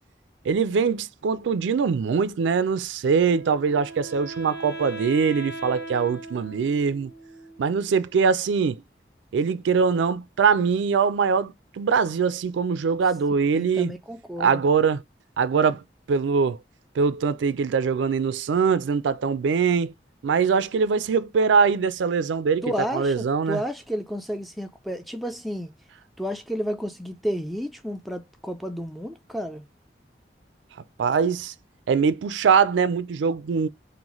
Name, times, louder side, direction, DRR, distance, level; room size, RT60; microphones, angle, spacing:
voice 1, 0.5-7.1 7.6-8.8 9.3-13.9 14.4-15.0 15.4-15.8 16.1-16.6 17.0-19.9 20.2-22.6 22.9-23.6 31.0-31.5 31.9-33.7, right 5 dB, 85° right, 0.4 m, -22 dB
Wind instrument woodwind instrument, 3.0-8.1, right 2 dB, 70° left, 0.7 m, -39 dB
voice 2, 13.5-14.6 22.6-25.7 26.2-29.7, equal, ahead, 0.3 m, -31 dB
3.9 x 2.1 x 3.0 m
head